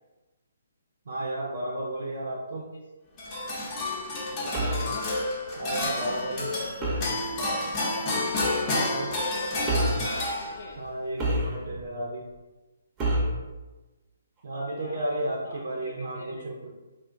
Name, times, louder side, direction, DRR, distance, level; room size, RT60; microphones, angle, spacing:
voice 1, 1.1-2.7 5.6-6.5 8.6-9.1 10.8-12.2 14.4-16.7, right 1 dB, 70° right, -1 dB, 0.5 m, -33 dB
voice 2, 2.5-2.8 4.4-5.1 6.5-10.8 14.8-16.5, left 2 dB, 70° left, 0 dB, 0.3 m, -42 dB
sound 1, 3.2-10.9, left 2 dB, 25° left, 0.7 m, -30 dB
sound 2, 4.5-4.9 6.8-7.2 8.4-8.6 9.7-10.1 11.2-11.8 13.0-13.4, right 1 dB, 20° right, 0.6 m, -27 dB
2.4 x 2.2 x 3.6 m, 1.1 s
hypercardioid pair, 145°, 0 cm